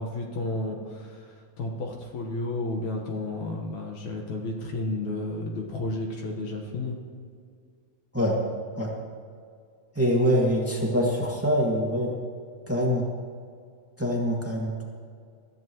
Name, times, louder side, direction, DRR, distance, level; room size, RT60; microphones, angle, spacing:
voice 1, 0.0-7.0, left 2 dB, 60° left, 0 dB, 2.4 m, -32 dB
voice 2, 9.9-12.1 12.7-13.0 14.0-14.8, equal, 20° right, -2 dB, 0.4 m, -24 dB
21.5 x 14.5 x 3.1 m, 2.2 s
omnidirectional pair, 4.3 m